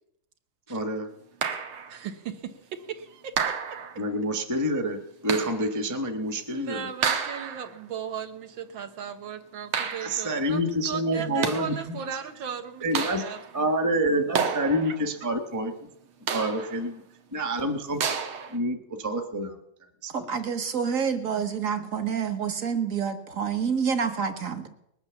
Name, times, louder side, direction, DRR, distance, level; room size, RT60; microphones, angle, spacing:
voice 1, 0.7-1.1 4.0-5.0 5.2-6.8 10.0-12.0 12.8-13.2 13.5-15.7 16.3-17.0 17.3-18.0 18.5-19.6 20.0-20.1 21.8-21.9, right 1 dB, 10° right, 6 dB, 1.0 m, -27 dB
sound 1, 1.4-2.0 3.4-4.1 5.3-5.7 7.0-7.8 9.7-10.3 11.2-11.8 12.9-13.5 14.3-15.1 16.3-16.8 18.0-18.6, right 6 dB, 85° right, 2.2 m, -30 dB
voice 2, 1.9-3.6 6.5-13.4 14.9-15.0, right 7 dB, 70° right, 7 dB, 1.8 m, -37 dB
voice 3, 20.1-24.7, right 6 dB, 45° right, 8 dB, 1.5 m, -28 dB
20.5 x 8.7 x 7.1 m, 0.78 s
omnidirectional pair, 2.3 m